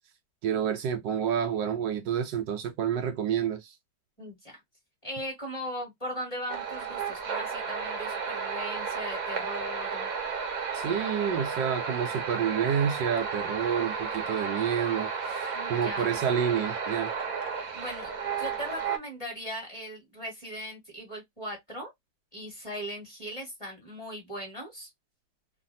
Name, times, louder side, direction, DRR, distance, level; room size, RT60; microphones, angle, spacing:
voice 1, 0.4-3.7 10.7-17.1, right 8 dB, 75° right, 1.2 m, -29 dB
voice 2, 4.2-4.6 5.0-10.1 15.5-16.2 17.7-21.9 22.3-24.9, equal, 15° left, 1.6 m, -39 dB
sound 1, 6.5-19.0, right 5 dB, 55° right, 1.1 m, -33 dB
3.2 x 2.4 x 2.5 m
omnidirectional pair, 2.1 m